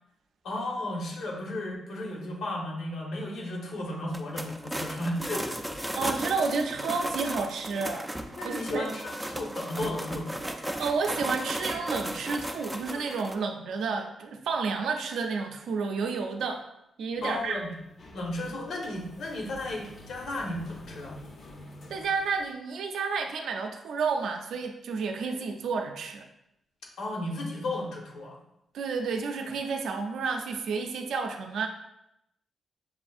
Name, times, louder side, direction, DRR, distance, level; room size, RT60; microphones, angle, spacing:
voice 1, 0.4-5.5 8.4-10.4 17.2-17.7 18.1-21.2 27.0-28.4, left 1 dB, 75° left, -1 dB, 1.0 m, -34 dB
sound 1, 4.1-13.3, right 1 dB, 5° right, 0.3 m, -35 dB
voice 2, 5.9-8.1 8.4-8.9 10.8-16.6 17.0-17.6 21.9-26.2 28.7-31.7, right 4 dB, 85° right, 4 dB, 0.4 m, -30 dB
sound 2, 17.1-22.5, left 1 dB, 45° left, 0.6 m, -48 dB
6.8 x 2.6 x 2.4 m, 0.83 s
wide cardioid pair, 165°, 0 cm